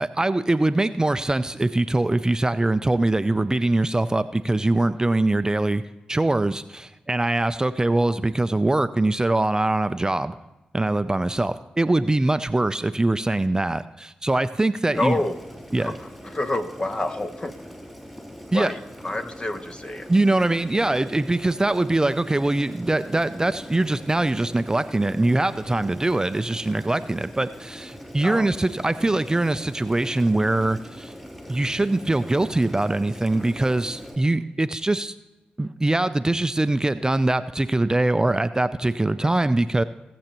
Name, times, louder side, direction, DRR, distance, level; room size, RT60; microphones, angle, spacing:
voice 1, 0.0-5.8 6.1-10.4 10.7-15.2 15.7-15.9 18.5-18.7 20.1-31.1 31.5-35.1 35.6-39.8, right 2 dB, 20° right, 12 dB, 0.4 m, -22 dB
voice 2, 14.9-15.4 15.8-17.5 18.5-18.8 19.0-20.1 28.2-28.5 39.2-39.3, left 2 dB, 35° left, 7 dB, 1.0 m, -28 dB
Boiling, 14.9-34.2, equal, 5° left, 3.4 m, -42 dB
18.0 x 7.8 x 3.0 m, 1.0 s
supercardioid pair, 40°, 3 cm